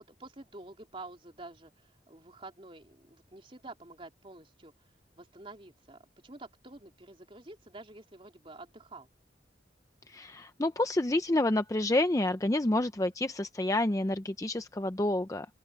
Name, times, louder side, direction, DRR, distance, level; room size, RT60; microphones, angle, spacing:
voice 1, 0.0-4.7 5.2-9.1, right 2 dB, 30° right, 3.5 m, -49 dB
voice 2, 10.1-15.5, left 1 dB, 20° left, 0.6 m, -29 dB
open air
head